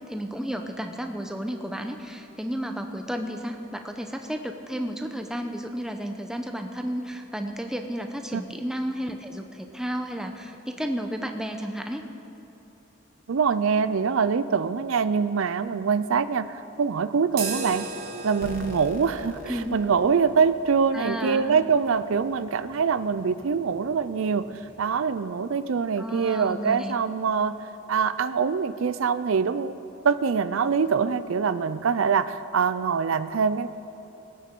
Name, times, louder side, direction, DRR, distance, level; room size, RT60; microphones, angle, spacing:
voice 1, 0.1-12.0 19.5-19.8 20.9-21.5 26.0-26.9, equal, 5° right, 5 dB, 0.7 m, -32 dB
voice 2, 13.3-17.9 18.2-27.6 27.9-29.8 30.0-33.7, right 6 dB, 80° right, 13 dB, 0.5 m, -24 dB
sound 1, 17.3-25.1, right 3 dB, 45° right, 1.6 m, -40 dB
sound 2, 18.4-21.1, left 2 dB, 40° left, 0.7 m, -43 dB
21.0 x 9.2 x 4.6 m, 2.9 s
head